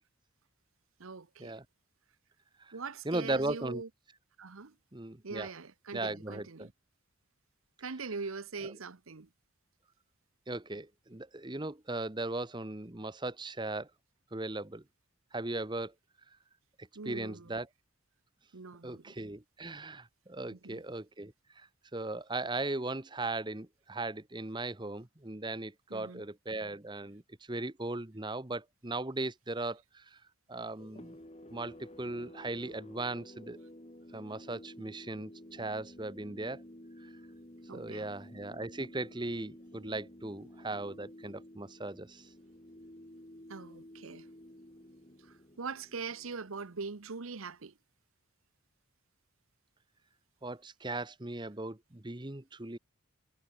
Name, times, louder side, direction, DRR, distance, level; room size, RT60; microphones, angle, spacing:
voice 1, 1.0-1.6 2.7-3.9 4.4-4.7 5.2-6.7 7.8-9.3 16.9-17.6 18.5-19.1 20.5-20.8 25.9-26.2 37.7-38.2 43.5-44.3 45.2-47.7, right 4 dB, 75° right, 0.9 m, -42 dB
voice 2, 3.0-3.8 4.9-5.5 5.9-6.7 10.5-13.9 14.3-14.8 15.3-15.9 17.0-17.7 18.8-21.7 21.9-27.2 27.5-30.2 30.5-31.2 31.5-33.6 34.1-36.6 37.0-37.1 37.7-42.3 50.4-52.8, right 2 dB, 20° right, 1.0 m, -38 dB
sound 1, 30.8-47.1, left 1 dB, 30° left, 2.5 m, -52 dB
head